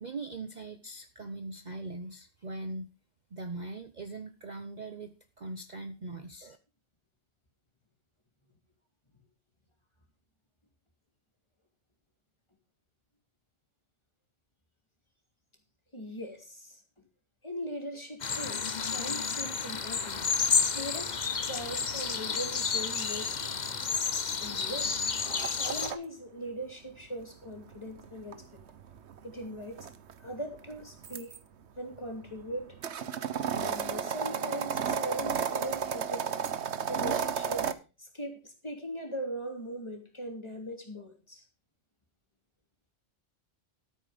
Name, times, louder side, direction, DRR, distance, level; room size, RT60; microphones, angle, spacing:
voice 1, 0.0-2.9 3.3-6.6, right 2 dB, 40° right, 8 dB, 0.9 m, -41 dB
voice 2, 15.9-16.8 17.4-21.2 21.5-23.5 24.4-25.0 25.4-28.6 29.2-29.9 30.2-31.4 31.8-32.8 33.5-37.7 38.0-41.4, equal, 20° left, 3 dB, 2.9 m, -40 dB
sound 1, 18.2-25.9, left 5 dB, 40° left, 1.0 m, -31 dB
sound 2, 20.1-26.0 27.2-31.4 31.9-37.7, right 7 dB, 65° right, 1.2 m, -34 dB
13.0 x 9.1 x 5.0 m, 0.31 s
omnidirectional pair, 1.3 m